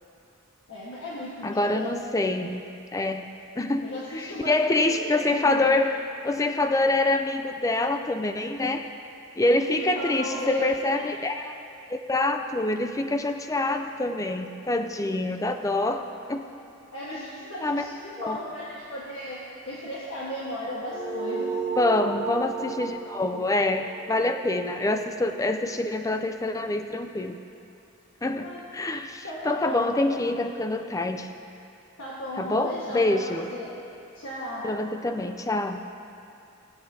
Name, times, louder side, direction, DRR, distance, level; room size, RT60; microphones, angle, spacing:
voice 1, 0.7-1.9 3.8-5.7 9.5-11.0 16.9-21.5 28.4-28.6 29.2-30.2 32.0-33.7 34.1-34.8, left 1 dB, 60° left, -8 dB, 1.5 m, -35 dB
voice 2, 1.4-2.6 2.9-3.2 3.6-8.9 9.4-11.6 11.9-16.5 17.6-17.8 18.2-18.4 21.8-27.4 28.2-31.3 32.4-33.5 34.6-35.8, left 2 dB, 15° left, 7 dB, 0.4 m, -26 dB
sound 1, 20.9-25.7, right 5 dB, 45° right, 1.7 m, -34 dB
19.5 x 7.9 x 2.8 m, 2.6 s
head